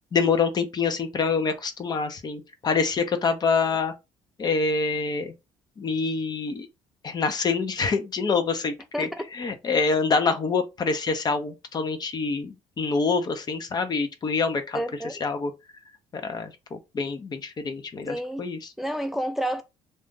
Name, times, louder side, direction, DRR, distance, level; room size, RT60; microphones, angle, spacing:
voice 1, 0.1-3.9 4.4-5.3 5.8-6.7 7.0-15.5 16.1-18.7, left 4 dB, 40° left, 0.8 m, -26 dB
voice 2, 8.9-9.3 14.7-15.1 18.1-18.5 18.8-19.6, equal, ahead, 0.4 m, -29 dB
2.6 x 2.5 x 3.7 m
supercardioid pair, 75°, 11 cm